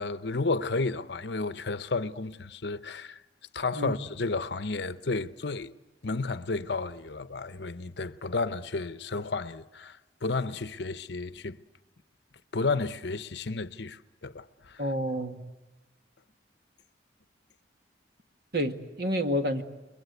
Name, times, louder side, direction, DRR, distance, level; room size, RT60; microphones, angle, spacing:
voice 1, 0.0-3.2 3.5-5.7 6.0-11.6 12.5-14.8, left 3 dB, 65° left, 0.8 m, -32 dB
voice 2, 14.8-15.4 18.5-19.6, equal, 55° right, 1.8 m, -29 dB
29.5 x 23.0 x 8.1 m
head